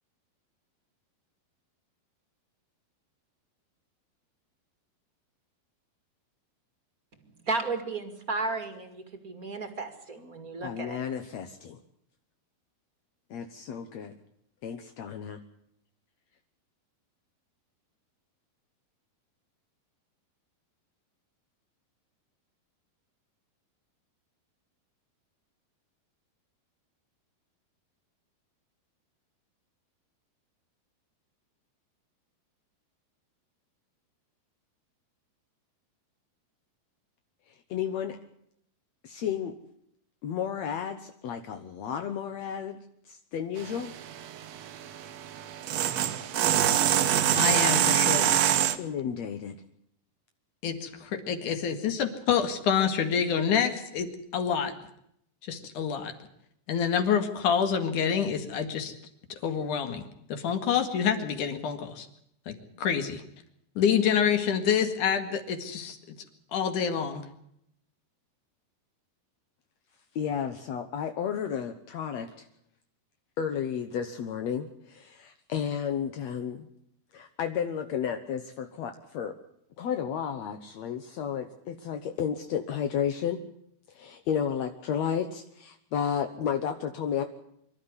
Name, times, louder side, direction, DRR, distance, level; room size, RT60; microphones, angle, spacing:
voice 1, 7.5-11.0, right 3 dB, 30° right, 7 dB, 1.7 m, -33 dB
voice 2, 10.6-11.8 13.3-14.1 14.6-15.4 37.7-38.2 39.0-39.6 40.2-42.8 43.1-43.9 48.8-49.5 70.1-72.4 73.4-76.7 77.1-79.3 79.8-83.4 83.9-87.2, left 8 dB, 70° left, 7 dB, 1.6 m, -32 dB
sound 1, 43.6-48.8, right 10 dB, 80° right, 1.5 m, -25 dB
voice 3, 47.3-48.4 50.6-54.7 55.4-56.1 56.7-58.9 59.3-60.0 60.3-62.1 62.5-63.2 63.8-66.0 66.5-67.2, left 7 dB, 55° left, 8 dB, 3.1 m, -27 dB
24.5 x 13.0 x 9.7 m, 0.73 s
omnidirectional pair, 4.6 m